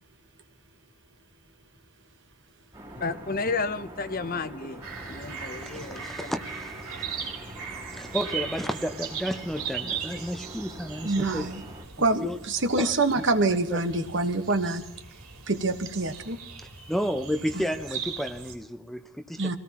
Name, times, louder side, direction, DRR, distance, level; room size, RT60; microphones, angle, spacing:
sound 1, 2.7-11.8, right 1 dB, 20° right, 3.1 m, -45 dB
voice 1, 3.0-6.3, left 4 dB, 40° left, 0.8 m, -32 dB
sound 2, 4.8-18.6, right 6 dB, 85° right, 4.1 m, -39 dB
voice 2, 5.5-6.8 7.1-7.3 7.9-11.5 12.2-12.4 12.8-12.9 13.7-13.8 16.9-19.6, equal, ahead, 0.7 m, -32 dB
voice 3, 11.0-11.6 12.0-14.9 15.5-16.4 17.5-17.6 19.4-19.6, right 2 dB, 55° right, 1.4 m, -26 dB
25.5 x 17.5 x 3.0 m
head